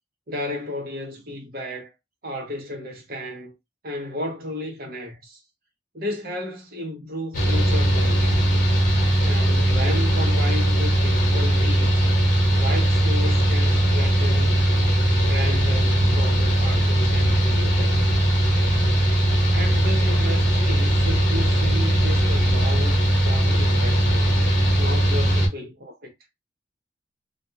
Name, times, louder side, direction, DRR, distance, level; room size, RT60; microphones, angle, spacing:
voice 1, 0.3-1.9 2.2-3.5 3.8-5.4 5.9-8.5 9.2-11.9 12.5-14.7 15.2-18.1 19.5-24.4 24.8-26.1, left 1 dB, 55° right, 0.9 m, -33 dB
Mechanical fan, 7.3-25.5, right 1 dB, 50° left, 1.0 m, -19 dB
2.4 x 2.2 x 2.7 m
head